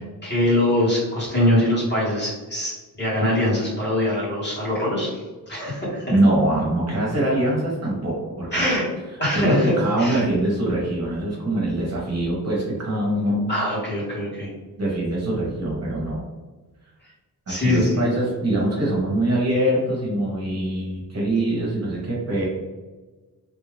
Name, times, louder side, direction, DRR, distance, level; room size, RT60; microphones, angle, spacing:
voice 1, 0.2-2.7 3.0-5.2 5.5-6.0 8.5-8.9 9.2-9.7 10.0-10.2 13.5-14.5 17.5-18.0, left 1 dB, 25° left, -6 dB, 1.4 m, -22 dB
voice 2, 6.1-8.6 9.3-13.5 14.8-16.2 17.5-22.5, right 1 dB, 40° right, -5 dB, 1.2 m, -23 dB
3.4 x 2.7 x 3.2 m, 1.3 s
wide cardioid pair, 160°, 38 cm